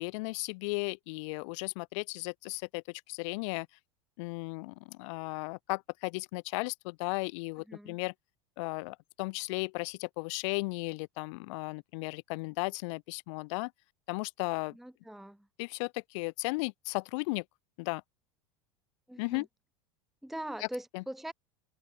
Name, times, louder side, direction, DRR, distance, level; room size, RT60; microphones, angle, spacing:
voice 1, 0.0-3.7 4.2-8.1 8.6-13.7 14.1-14.7 15.6-17.4 17.8-18.0 19.2-19.5 20.9-21.0, left 27 dB, 60° left, 0.4 m, -35 dB
voice 2, 7.7-8.0 14.7-15.5 19.1-19.5 20.2-21.3, right 1 dB, ahead, 1.0 m, -42 dB
open air
hypercardioid pair, 90°, 18 cm